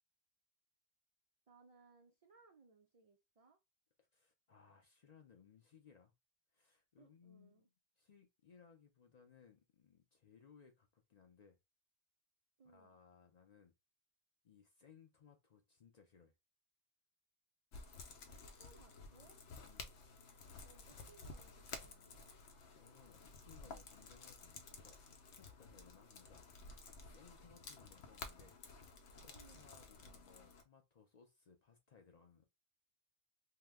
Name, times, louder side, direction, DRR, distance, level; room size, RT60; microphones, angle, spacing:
voice 1, 1.5-3.6 7.0-7.7 12.6-13.0 18.3-19.4 20.6-22.4 29.3-29.7, right 4 dB, 70° right, 0.3 m, -66 dB
voice 2, 4.1-6.1 6.5-7.7 8.0-11.6 12.6-13.7 14.4-16.3 19.7-20.0 22.8-28.6 29.2-32.4, left 6 dB, 50° left, 0.5 m, -65 dB
sound 1, 17.7-30.6, left 4 dB, 80° left, 0.9 m, -54 dB
2.8 x 2.1 x 3.3 m
omnidirectional pair, 1.2 m